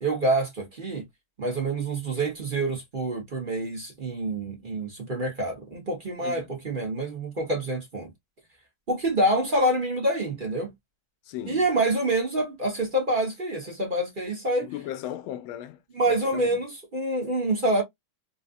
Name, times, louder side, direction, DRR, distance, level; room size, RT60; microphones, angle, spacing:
voice 1, 0.0-1.0 1.4-8.1 8.9-10.7 11.5-14.7 15.9-17.8, right 1 dB, 30° right, 1.1 m, -26 dB
voice 2, 11.3-11.6 14.6-15.8 16.1-16.6, left 12 dB, 85° left, 1.4 m, -36 dB
3.9 x 2.4 x 2.5 m
omnidirectional pair, 2.2 m